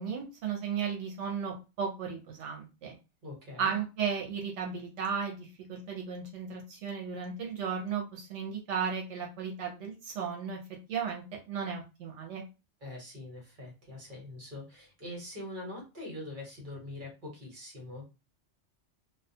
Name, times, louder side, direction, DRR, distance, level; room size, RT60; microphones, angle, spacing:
voice 1, 0.0-3.0 3.6-10.6 10.9-12.4, right 6 dB, 75° right, 0 dB, 0.9 m, -35 dB
voice 2, 3.2-3.7 12.8-18.0, left 1 dB, 45° right, -2 dB, 1.1 m, -43 dB
2.2 x 2.2 x 2.6 m, 0.29 s
omnidirectional pair, 1.2 m